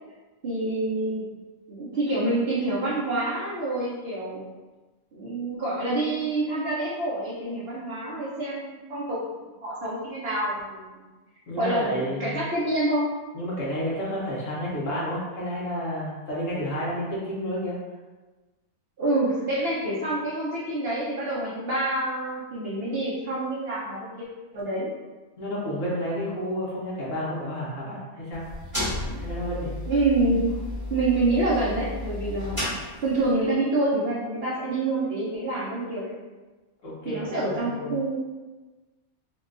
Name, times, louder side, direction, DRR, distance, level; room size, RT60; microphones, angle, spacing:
voice 1, 0.4-1.2 1.7-4.4 5.1-10.9 11.6-13.1 19.0-24.1 24.5-24.9 29.1-29.2 29.9-30.6 30.9-32.6 33.0-36.1 37.0-38.1, right 2 dB, 55° right, -8 dB, 0.8 m, -27 dB
voice 2, 11.5-12.4 13.3-17.7 25.4-28.4 29.2-29.7 36.8-38.0, equal, 65° left, -6 dB, 1.2 m, -31 dB
sound 1, 28.3-33.4, left 1 dB, 15° right, 1.0 m, -33 dB
3.7 x 2.3 x 2.4 m, 1.2 s
omnidirectional pair, 1.5 m